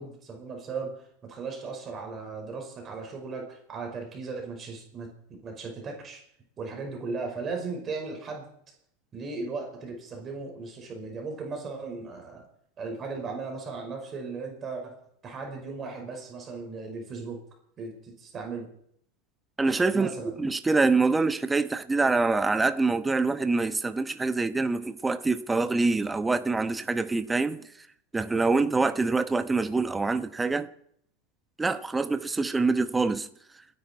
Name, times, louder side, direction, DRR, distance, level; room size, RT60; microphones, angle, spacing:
voice 1, 0.0-5.1 5.4-6.2 6.6-8.5 9.1-12.4 12.8-17.4 17.8-18.7 19.9-20.4, right 4 dB, 25° right, 5.4 m, -37 dB
voice 2, 19.6-20.1 20.4-27.7 28.1-30.7 31.6-33.3, right 3 dB, 10° right, 1.0 m, -25 dB
29.0 x 11.0 x 4.6 m
supercardioid pair, 135°, 0 cm